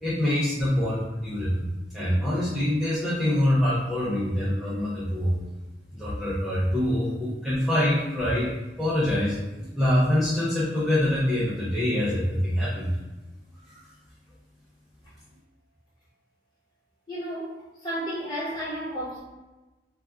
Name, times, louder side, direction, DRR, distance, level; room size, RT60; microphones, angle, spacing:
voice 1, 0.0-5.4 5.9-8.5 8.8-13.0 13.7-13.8, left 1 dB, ahead, -10 dB, 0.5 m, -25 dB
voice 2, 17.1-19.2, equal, 25° left, -9 dB, 1.2 m, -32 dB
2.5 x 2.3 x 3.4 m, 1.1 s
head